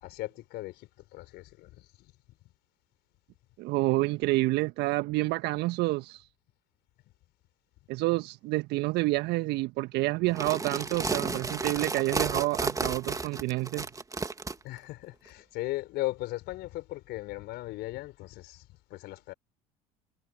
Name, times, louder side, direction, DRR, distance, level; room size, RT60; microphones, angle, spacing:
voice 1, 0.0-1.9 14.6-18.6 18.9-19.3, left 18 dB, 55° left, 4.4 m, -37 dB
voice 2, 3.6-6.3 7.9-13.9, right 21 dB, 60° right, 1.5 m, -28 dB
sound 1, 10.3-14.5, right 3 dB, 15° right, 2.2 m, -32 dB
hypercardioid pair, 65°, 20 cm